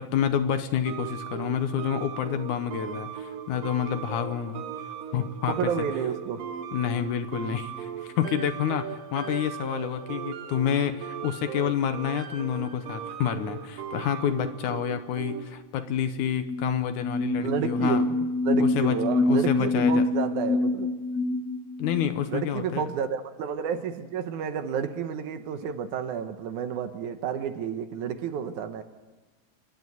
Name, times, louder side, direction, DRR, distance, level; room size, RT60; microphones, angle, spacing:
voice 1, 0.0-4.6 5.1-5.9 6.7-18.0 18.6-19.0 19.3-20.0 21.8-22.8, left 9 dB, 70° left, 9 dB, 2.2 m, -28 dB
sound 1, 0.9-15.6, right 8 dB, 90° right, 2.8 m, -38 dB
voice 2, 5.5-6.5 17.4-20.9 22.3-28.8, right 7 dB, 70° right, 8 dB, 2.3 m, -31 dB
sound 2, 16.3-22.1, left 2 dB, 40° left, 1.6 m, -26 dB
27.5 x 11.0 x 9.3 m, 1.2 s
omnidirectional pair, 3.9 m